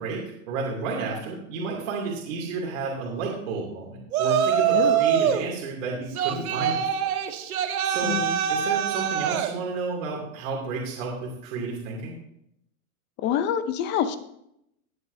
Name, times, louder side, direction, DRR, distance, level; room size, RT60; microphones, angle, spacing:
voice 1, 0.0-7.1 7.5-8.2 8.5-12.2, right 4 dB, 65° right, -3 dB, 2.7 m, -32 dB
Yell, 4.1-5.5 6.1-9.5, right 9 dB, 85° right, 1.3 m, -24 dB
voice 2, 4.7-5.0 8.0-8.4 13.2-14.2, left 9 dB, 25° left, 11 dB, 0.6 m, -26 dB
17.0 x 7.3 x 2.7 m, 0.76 s
supercardioid pair, 150°, 42 cm